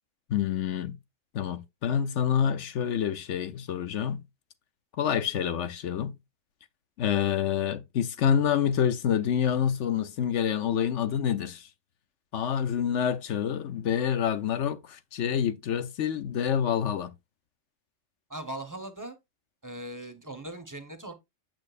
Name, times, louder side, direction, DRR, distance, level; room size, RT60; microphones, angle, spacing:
voice 1, 0.3-1.0 1.3-4.2 5.0-6.1 7.0-11.7 12.3-17.1, left 8 dB, 70° left, 1.0 m, -27 dB
voice 2, 18.3-19.2 19.6-21.1, right 1 dB, 15° right, 1.1 m, -39 dB
8.7 x 6.2 x 2.5 m
omnidirectional pair, 1.3 m